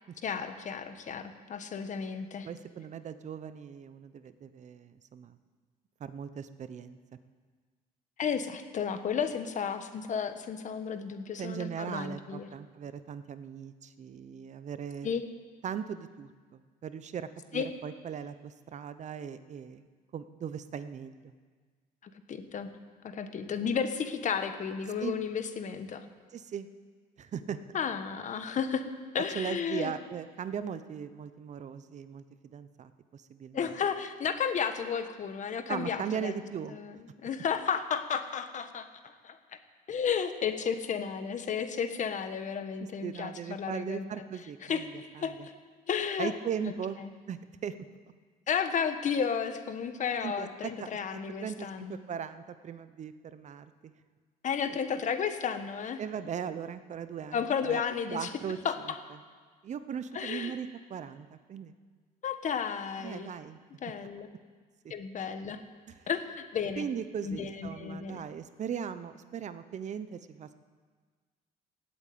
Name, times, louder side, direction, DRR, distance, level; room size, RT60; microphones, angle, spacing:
voice 1, 0.2-2.5 8.2-12.5 15.0-15.2 17.5-17.7 22.3-22.7 23.0-26.1 27.7-28.8 29.1-29.9 33.5-36.3 36.7-39.4 39.9-44.1 44.6-45.5 45.9-46.3 46.6-46.7 47.0-47.1 48.5-52.0 54.4-56.0 57.3-58.3 58.6-59.0 60.1-60.5 62.2-63.3 63.8-64.3 64.9-65.6 66.1-66.9 67.2-68.2, left 7 dB, 45° left, 9 dB, 1.4 m, -33 dB
voice 2, 2.4-5.4 6.0-7.0 11.4-15.1 15.6-19.8 20.1-21.3 25.0-25.1 26.3-26.7 27.2-27.6 29.3-33.7 35.7-36.8 43.0-45.5 46.2-47.0 47.3-47.7 50.2-51.0 51.4-53.9 56.0-57.8 58.1-58.6 59.6-61.7 63.0-63.6 64.8-64.9 65.9-66.0 66.8-70.5, right 8 dB, 45° right, 12 dB, 0.8 m, -38 dB
17.0 x 8.5 x 8.6 m, 1.5 s
cardioid pair, 110°, 17 cm